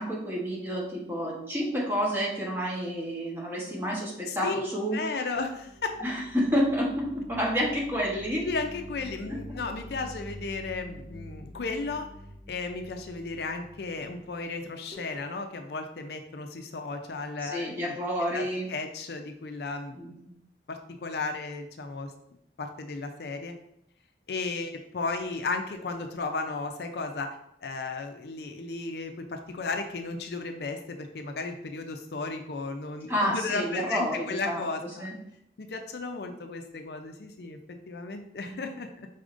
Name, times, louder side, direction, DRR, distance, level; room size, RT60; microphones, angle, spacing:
voice 1, 0.0-5.0 6.0-8.5 9.3-9.4 17.4-18.7 20.0-20.4 33.1-34.6 35.0-35.1 38.5-38.6, equal, 15° right, -4 dB, 1.1 m, -29 dB
voice 2, 4.3-4.7 4.9-5.9 8.4-12.1 12.5-17.7 18.3-20.0 20.7-22.1 22.6-23.5 24.3-35.1 35.6-37.6 37.9-39.1, left 3 dB, 65° left, 5 dB, 0.5 m, -34 dB
sound 1, 5.3-14.6 14.9-15.2, equal, 45° right, 1.6 m, -46 dB
4.9 x 4.1 x 2.5 m, 0.76 s
head